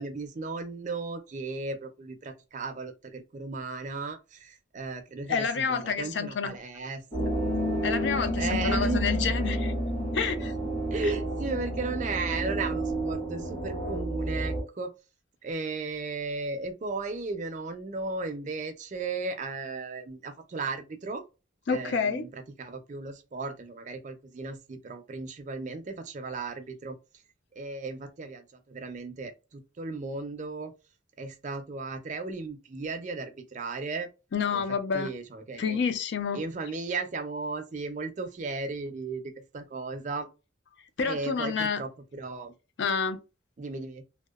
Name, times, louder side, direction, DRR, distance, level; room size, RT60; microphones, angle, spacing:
voice 1, 0.0-7.3 8.4-9.2 10.9-14.9 15.4-21.2 21.7-27.0 27.6-30.7 31.2-34.1 34.5-34.6 34.9-35.8 36.3-40.3 41.0-42.5 43.6-44.0, right 3 dB, 40° right, 0.4 m, -35 dB
voice 2, 5.3-6.6 7.8-9.7 10.1-10.5 21.7-22.3 34.3-35.1 35.6-36.4 41.0-41.8 42.8-43.2, left 5 dB, 60° left, 0.4 m, -28 dB
sound 1, 7.1-14.6, right 1 dB, 35° left, 1.0 m, -30 dB
2.8 x 2.0 x 2.2 m
head